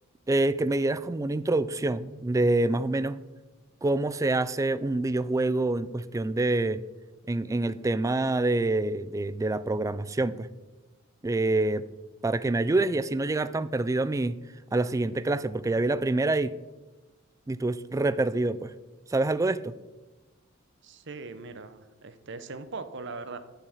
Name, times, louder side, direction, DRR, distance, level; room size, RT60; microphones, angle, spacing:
voice 1, 0.3-3.2 3.8-6.8 7.3-10.5 11.2-11.8 12.2-14.4 14.7-16.6 17.5-18.7 19.1-19.7, right 2 dB, 15° right, 15 dB, 0.3 m, -26 dB
voice 2, 20.8-23.4, right 3 dB, 60° right, 11 dB, 0.8 m, -40 dB
10.5 x 5.7 x 7.2 m, 1.2 s
head